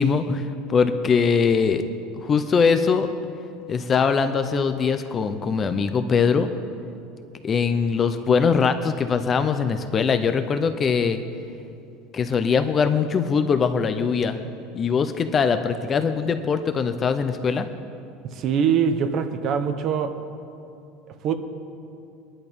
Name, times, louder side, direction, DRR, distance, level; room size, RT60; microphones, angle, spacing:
voice 1, 0.0-1.8 2.2-3.1 3.7-6.5 7.4-11.2 12.1-14.4 14.7-17.7, left 5 dB, 20° left, 9 dB, 0.5 m, -22 dB
voice 2, 18.3-20.2 21.2-21.3, right 7 dB, 35° right, 8 dB, 0.9 m, -23 dB
22.0 x 11.0 x 5.2 m, 2.6 s
cardioid pair, 170°, 0 cm